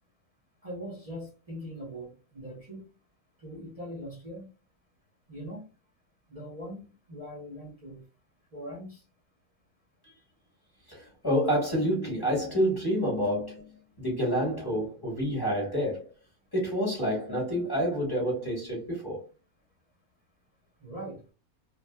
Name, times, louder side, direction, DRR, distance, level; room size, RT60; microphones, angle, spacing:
voice 1, 0.6-2.8 3.4-4.5 5.3-5.6 6.3-8.0 8.5-9.0 20.8-21.2, equal, 30° right, 0.9 m, -41 dB
voice 2, 10.9-13.6 14.0-16.1 16.5-19.2, equal, 15° left, 1.3 m, -28 dB
3.2 x 2.5 x 2.3 m
omnidirectional pair, 1.6 m